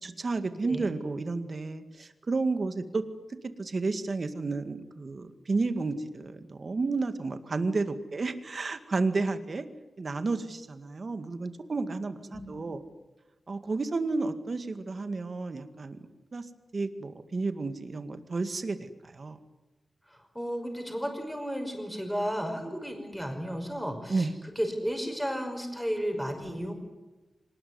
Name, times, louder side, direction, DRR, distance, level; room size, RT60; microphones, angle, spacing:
voice 1, 0.0-3.0 3.6-9.7 10.0-12.8 13.5-16.0 16.3-16.5 16.7-19.4 24.1-24.3, right 3 dB, 50° right, 9 dB, 2.1 m, -31 dB
voice 2, 12.3-12.6 20.1-24.3 24.6-26.7, equal, ahead, 4 dB, 5.7 m, -33 dB
25.5 x 20.0 x 9.6 m, 1.1 s
wide cardioid pair, 110°, 0 cm